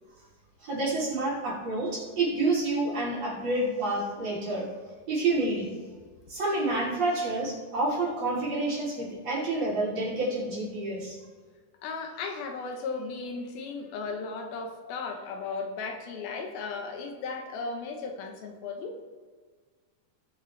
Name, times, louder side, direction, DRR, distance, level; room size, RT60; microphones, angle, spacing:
voice 1, 0.6-4.7 5.1-5.7 6.3-11.2, right 2 dB, 45° right, -6 dB, 4.2 m, -28 dB
voice 2, 11.8-19.0, left 4 dB, 80° left, 3 dB, 2.9 m, -36 dB
20.0 x 6.6 x 3.3 m, 1.6 s
omnidirectional pair, 4.4 m